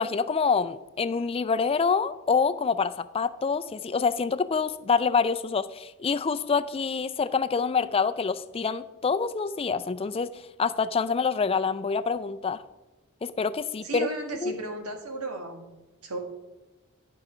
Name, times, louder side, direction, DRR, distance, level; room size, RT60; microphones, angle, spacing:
voice 1, 0.0-12.6 13.2-14.1 14.4-14.5, left 5 dB, 25° left, 13 dB, 0.4 m, -26 dB
voice 2, 13.8-15.7 16.0-16.2, right 2 dB, 80° right, 4 dB, 1.6 m, -34 dB
11.0 x 5.7 x 4.9 m, 1.1 s
head